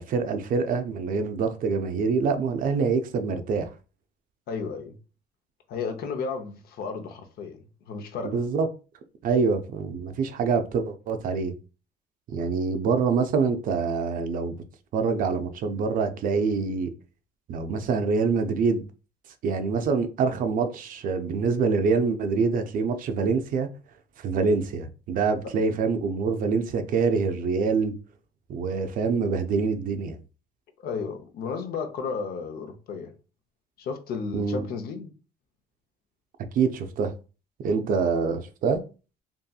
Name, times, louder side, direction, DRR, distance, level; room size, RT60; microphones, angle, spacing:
voice 1, 0.0-3.7 8.3-8.7 9.2-11.5 12.3-14.6 14.9-16.9 17.5-18.8 19.4-23.7 24.2-27.9 28.5-30.2 34.3-34.6 36.5-37.1 37.6-38.8, right 5 dB, 55° right, 0.4 m, -25 dB
voice 2, 4.5-5.0 5.7-8.4 30.8-33.1 33.8-35.1, left 5 dB, 65° left, 0.6 m, -33 dB
2.7 x 2.6 x 2.3 m
cardioid pair, 110°, 17 cm